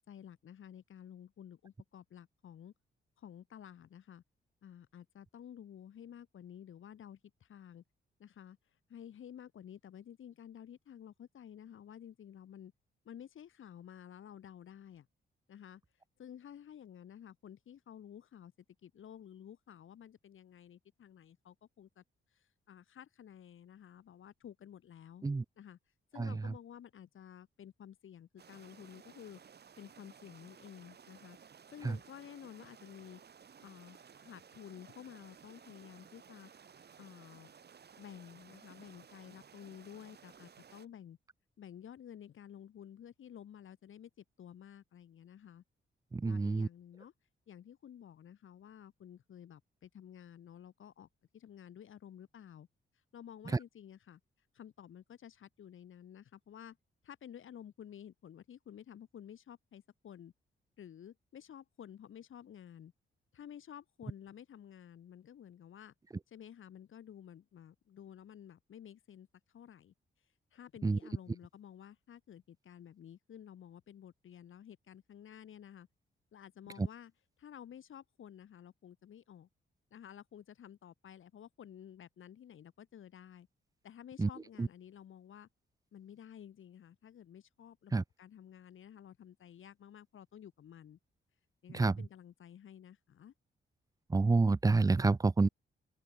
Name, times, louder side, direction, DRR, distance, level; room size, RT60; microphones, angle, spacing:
voice 1, 0.1-2.7 3.2-4.2 4.6-7.8 8.2-8.6 8.9-12.7 13.0-15.1 15.5-15.8 16.2-18.5 18.8-22.0 22.3-25.3 25.6-25.8 26.1-29.4 29.8-31.4 31.7-33.2 33.6-37.5 38.0-41.2 41.6-45.6 46.2-47.1 47.5-52.7 53.1-54.2 54.5-56.8 57.0-60.3 60.8-62.9 63.3-65.9 66.3-69.3 69.5-69.9 70.5-75.9 76.3-77.1 77.4-79.5 79.9-83.5 83.8-85.5 85.9-91.0 91.6-93.3, left 9 dB, 75° left, 3.1 m, -52 dB
sound 1, 28.4-40.9, right 7 dB, 55° right, 3.6 m, -58 dB
voice 2, 46.1-46.7 70.8-71.0 84.2-84.3 84.6-84.7 87.9-88.0 91.7-91.9 94.1-95.5, right 3 dB, 15° right, 0.6 m, -28 dB
open air
wide cardioid pair, 125°, 21 cm